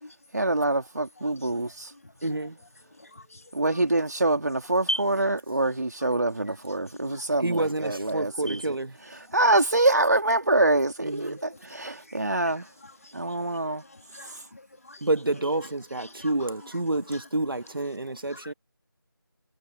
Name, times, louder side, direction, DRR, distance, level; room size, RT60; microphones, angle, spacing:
voice 1, 0.3-1.9 3.5-8.7 9.3-12.6 13.1-13.8, right 2 dB, 50° right, 3.3 m, -25 dB
voice 2, 1.4-1.7 2.4-2.5 3.2-3.4 3.7-3.8 4.9-5.0 6.0-6.1 7.0-7.2 8.5-8.6 12.1-12.5 12.8-12.9 14.1-15.0 15.9-16.5 17.1-17.2 18.3-18.5, equal, 40° left, 2.0 m, -38 dB
voice 3, 2.2-2.5 7.4-8.9 11.0-11.4 15.0-18.5, right 2 dB, 70° right, 1.5 m, -28 dB
figure-of-eight pair, 180°, 12 cm